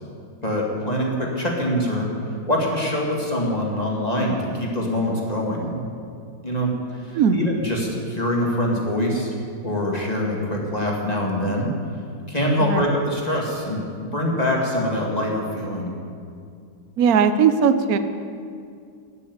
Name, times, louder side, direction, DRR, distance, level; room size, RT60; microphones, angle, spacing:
voice 1, 0.4-2.1 2.5-5.8 6.4-6.8 7.0-9.3 9.6-11.7 12.3-13.8 14.1-15.9, left 1 dB, 20° left, -2 dB, 2.0 m, -24 dB
voice 2, 7.1-7.4 12.6-12.8 17.0-18.0, right 6 dB, 60° right, 10 dB, 1.0 m, -18 dB
15.0 x 6.8 x 9.5 m, 2.3 s
omnidirectional pair, 2.2 m